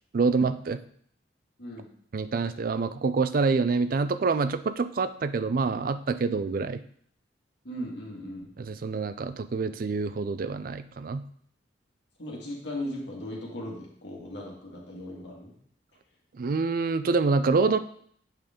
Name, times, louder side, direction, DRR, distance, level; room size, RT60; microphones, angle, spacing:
voice 1, 0.1-0.8 2.1-6.8 8.6-11.2 16.4-17.8, right 4 dB, 50° right, 12 dB, 0.4 m, -26 dB
voice 2, 7.6-8.5 12.2-15.5, left 1 dB, 70° left, -3 dB, 2.1 m, -37 dB
8.2 x 5.0 x 3.7 m, 0.62 s
head